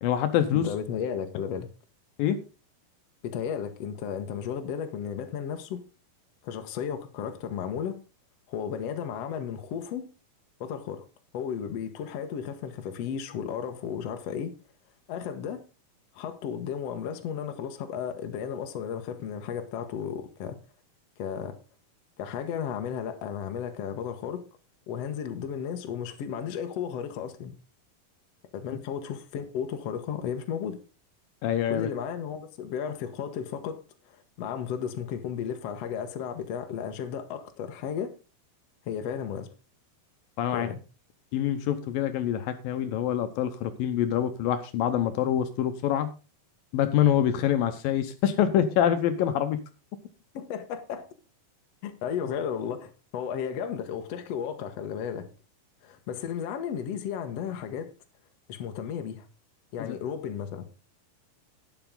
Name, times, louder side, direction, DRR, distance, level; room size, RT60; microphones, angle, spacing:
voice 1, 0.0-0.7 2.2-2.4 31.4-31.9 40.4-40.7 41.3-46.1 46.7-49.6 59.8-60.0, left 10 dB, 75° left, 2.5 m, -25 dB
voice 2, 0.5-1.7 3.2-5.8 6.4-8.0 8.5-10.1 10.6-11.0 11.3-14.5 15.1-15.6 16.1-20.6 21.2-21.6 22.2-24.4 24.9-27.5 28.5-30.8 31.7-33.8 34.1-38.1 38.9-39.5 40.5-40.8 50.3-51.1 51.8-55.3 55.8-57.9 58.5-59.3 59.7-60.6, left 8 dB, 60° left, 1.8 m, -34 dB
11.5 x 9.3 x 3.8 m
omnidirectional pair, 4.4 m